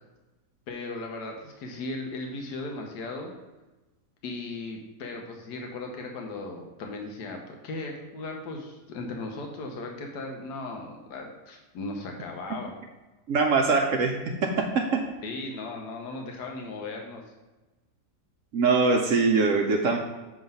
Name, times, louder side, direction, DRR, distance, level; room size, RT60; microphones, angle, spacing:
voice 1, 0.7-3.3 4.2-12.7 15.2-17.2, left 2 dB, 80° left, 2 dB, 1.5 m, -37 dB
voice 2, 13.3-14.1 14.4-15.0 18.5-20.0, right 4 dB, 65° right, 3 dB, 0.8 m, -22 dB
7.1 x 3.1 x 5.3 m, 1.1 s
omnidirectional pair, 1.7 m